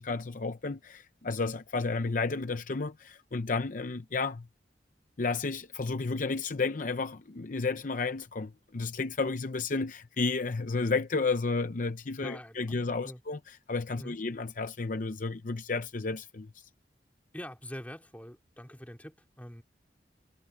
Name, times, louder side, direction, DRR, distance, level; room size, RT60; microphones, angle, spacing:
voice 1, 0.0-4.5 5.2-16.5, left 4 dB, 45° left, 0.7 m, -32 dB
voice 2, 12.2-12.6 13.0-13.2 14.0-14.2 17.3-19.6, equal, 10° left, 2.9 m, -44 dB
head